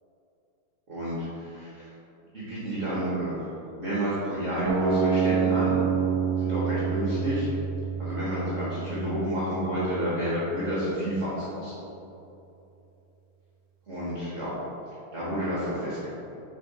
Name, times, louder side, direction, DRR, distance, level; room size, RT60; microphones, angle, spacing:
voice 1, 0.9-1.9 2.3-3.5 3.8-5.8 6.4-7.5 8.0-11.7 13.9-14.5 15.1-16.1, equal, 40° right, -9 dB, 1.5 m, -30 dB
sound 1, 4.7-10.7, right 7 dB, 60° right, 0.8 m, -28 dB
7.5 x 4.0 x 4.2 m, 2.9 s
omnidirectional pair, 2.2 m